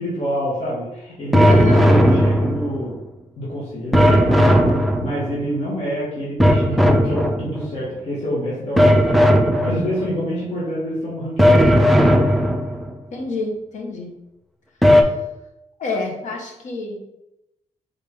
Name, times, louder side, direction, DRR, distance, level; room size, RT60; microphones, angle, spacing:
voice 1, 0.0-2.9 3.4-9.2 9.6-12.2, equal, 55° left, -8 dB, 1.6 m, -27 dB
sound 1, 1.3-2.9 3.9-5.4 6.4-7.7 8.8-10.1 11.4-12.9 14.8-15.0, equal, ahead, 0.4 m, -15 dB
voice 2, 1.5-1.9 13.1-14.1 15.0-15.2 15.8-17.0, left 3 dB, 70° left, 1 dB, 1.0 m, -28 dB
4.0 x 3.4 x 3.4 m, 0.89 s
wide cardioid pair, 145°, 13 cm